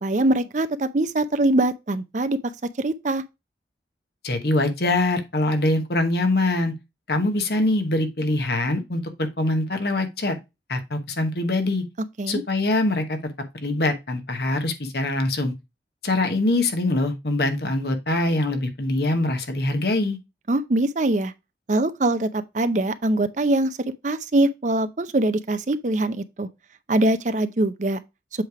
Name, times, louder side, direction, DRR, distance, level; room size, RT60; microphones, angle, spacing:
voice 1, 0.0-3.2 12.2-12.4 20.5-21.3 21.7-23.8 24.0-26.5 26.9-28.0, right 1 dB, 40° right, 0.6 m, -23 dB
voice 2, 4.2-6.7 7.1-10.3 10.7-11.8 12.3-13.2 13.6-15.5 16.0-20.2, left 2 dB, 60° left, 1.2 m, -23 dB
7.8 x 3.3 x 4.7 m
head